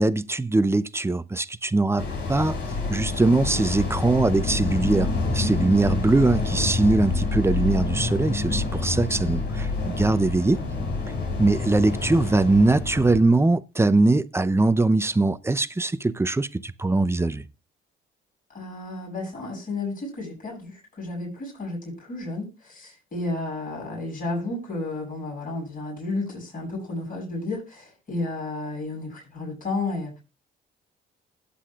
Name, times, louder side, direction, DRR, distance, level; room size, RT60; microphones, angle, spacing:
voice 1, 0.0-2.6 2.9-10.6 11.4-17.4, right 2 dB, 15° right, 0.7 m, -22 dB
sound 1, 2.0-13.2, left 3 dB, 65° left, 4.0 m, -27 dB
voice 2, 18.5-30.2, left 2 dB, 45° left, 7.5 m, -32 dB
20.0 x 8.6 x 2.4 m
cardioid pair, 90°, 20 cm